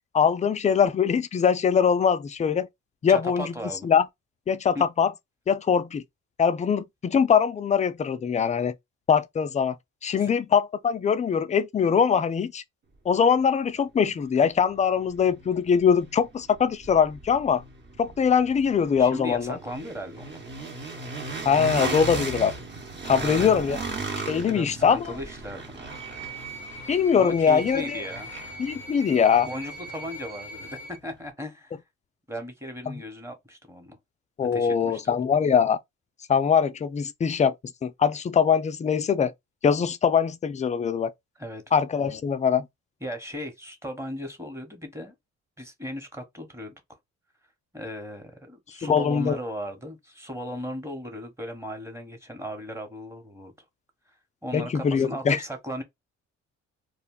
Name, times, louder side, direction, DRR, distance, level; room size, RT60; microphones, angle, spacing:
voice 1, 0.1-2.7 3.0-3.5 3.8-4.1 4.5-5.1 5.5-6.0 6.4-8.7 9.1-9.8 10.0-12.6 13.1-17.6 18.0-19.6 21.5-22.5 23.0-23.8 24.3-25.0 26.9-28.0 28.6-29.5 32.9-33.0 34.4-35.8 36.3-37.5 37.8-39.3 39.6-41.1 41.7-42.7 48.8-49.4 54.5-55.4, left 7 dB, 25° left, 0.3 m, -22 dB
voice 2, 3.1-3.9 4.7-4.8 10.2-10.3 19.0-20.4 23.2-23.5 24.4-25.7 27.2-28.3 29.4-31.8 32.3-34.0 34.5-35.1 41.4-41.6 43.0-45.1 45.6-46.8 47.7-53.5 54.4-55.8, equal, 10° right, 1.0 m, -36 dB
sound 1, 14.2-14.3 14.7-30.7, right 3 dB, 35° right, 1.0 m, -37 dB
sound 2, 25.9-31.0, right 1 dB, 65° right, 0.9 m, -40 dB
2.4 x 2.2 x 3.6 m
cardioid pair, 90°, 30 cm